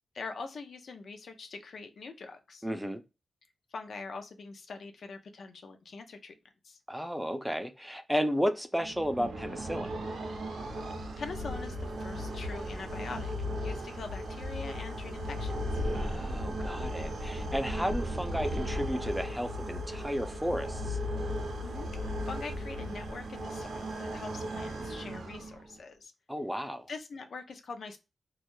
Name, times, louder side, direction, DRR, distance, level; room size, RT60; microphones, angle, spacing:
voice 1, 0.1-2.7 3.7-6.3 6.6-6.8 11.2-13.3 13.6-15.6 21.6-26.1 26.9-28.0, left 4 dB, 75° left, 0.5 m, -43 dB
voice 2, 2.6-3.0 6.9-9.9 15.9-21.0 26.3-26.9, equal, ahead, 0.5 m, -33 dB
sound 1, 8.8-25.8, equal, 85° right, 0.6 m, -36 dB
2.3 x 2.0 x 2.9 m
cardioid pair, 55°, 0 cm